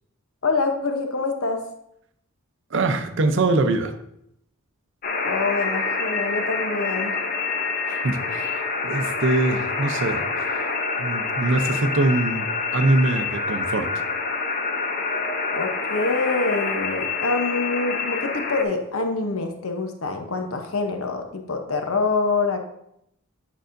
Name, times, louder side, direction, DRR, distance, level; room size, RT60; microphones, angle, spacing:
voice 1, 0.4-1.6 5.2-7.2 15.5-22.6, left 3 dB, 75° left, 5 dB, 0.8 m, -25 dB
voice 2, 2.7-3.9 7.9-10.2 11.0-14.0, right 2 dB, 55° right, 8 dB, 0.6 m, -23 dB
sound 1, 5.0-18.6, left 4 dB, 40° left, 0.6 m, -27 dB
9.0 x 5.5 x 2.6 m, 0.76 s
head